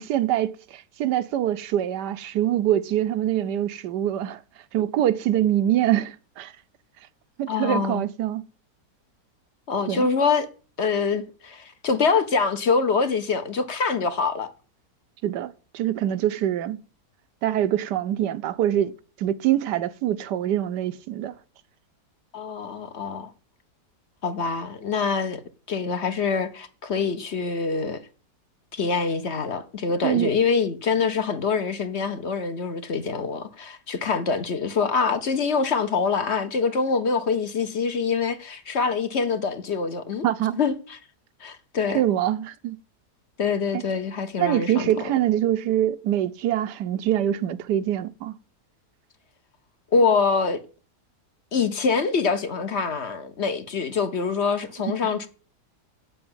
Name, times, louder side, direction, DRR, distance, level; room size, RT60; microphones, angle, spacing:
voice 1, 0.0-4.4 4.7-6.5 7.4-8.4 9.9-10.1 15.2-16.8 17.4-18.9 19.2-21.3 30.0-30.3 40.2-40.6 41.9-42.8 43.7-43.8 44.4-48.3, right 12 dB, 85° right, 1.3 m, -24 dB
voice 2, 7.5-8.1 9.7-10.5 10.8-14.5 22.3-23.3 24.2-25.4 25.7-28.0 28.7-40.3 40.6-41.0 41.4-42.0 43.4-44.9 49.9-50.6 51.5-55.3, left 5 dB, 45° left, 1.2 m, -25 dB
8.6 x 7.2 x 8.7 m
omnidirectional pair, 1.7 m